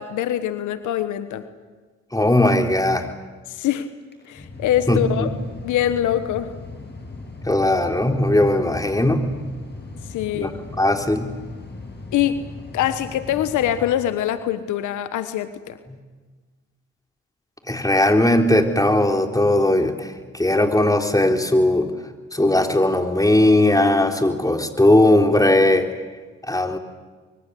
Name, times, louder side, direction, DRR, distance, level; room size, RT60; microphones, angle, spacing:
voice 1, 0.0-1.4 3.5-3.9 4.3-5.3 5.6-6.5 10.1-10.6 12.1-12.4 12.7-15.8, left 11 dB, 80° left, 12 dB, 1.3 m, -23 dB
voice 2, 2.1-3.1 4.9-5.3 7.5-9.2 10.3-10.5 10.8-11.3 17.7-21.9 22.3-25.9 26.5-26.8, left 1 dB, 10° left, 4 dB, 3.9 m, -18 dB
Mechanical fan, 4.0-14.5, left 3 dB, 35° left, 7.3 m, -38 dB
24.5 x 23.5 x 8.4 m, 1.4 s
supercardioid pair, 55°, 30 cm